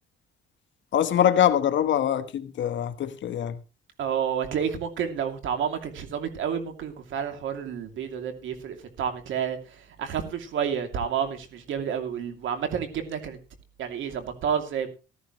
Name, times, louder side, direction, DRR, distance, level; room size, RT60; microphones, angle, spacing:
voice 1, 0.9-3.6, left 10 dB, 70° left, 1.3 m, -23 dB
voice 2, 4.0-9.6 10.0-13.4 13.8-14.9, right 7 dB, 80° right, 2.7 m, -30 dB
14.0 x 13.5 x 3.1 m
cardioid pair, 90°, 20 cm